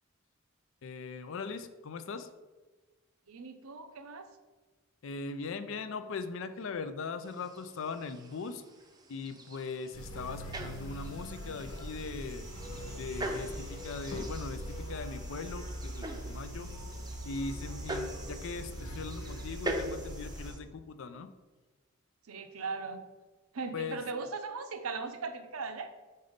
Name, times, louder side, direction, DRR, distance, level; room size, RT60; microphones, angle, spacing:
voice 1, 0.8-2.3 5.0-8.6 9.1-12.5 12.8-16.7 17.3-21.3 23.7-24.0, left 4 dB, 60° left, 11 dB, 0.4 m, -40 dB
voice 2, 3.3-4.3 22.3-23.0 23.5-25.9, right 4 dB, 75° right, 8 dB, 0.6 m, -38 dB
sound 1, 7.2-20.6, right 1 dB, 20° right, 0.6 m, -43 dB
sound 2, 9.9-20.5, equal, 85° left, 1.5 m, -42 dB
5.4 x 4.0 x 5.1 m, 1.2 s
head